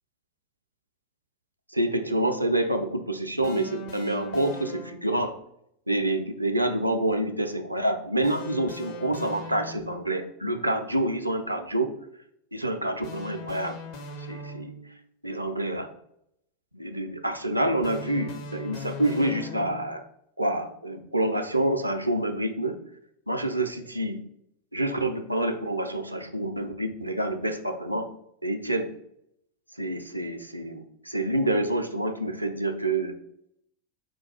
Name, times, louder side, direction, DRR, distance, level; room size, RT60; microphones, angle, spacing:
voice 1, 1.7-5.4 5.9-11.9 12.5-13.8 14.3-14.7 15.2-15.9 16.7-20.0 20.4-22.8 23.3-24.2 24.7-28.1 28.4-28.9 29.8-33.1, right 1 dB, 85° right, 6 dB, 0.5 m, -27 dB
sound 1, 3.4-5.2 8.2-10.1 13.0-15.0 17.8-20.0, left 2 dB, 50° left, 0.7 m, -40 dB
4.5 x 2.3 x 4.3 m, 0.74 s
figure-of-eight pair, 90°, 0 cm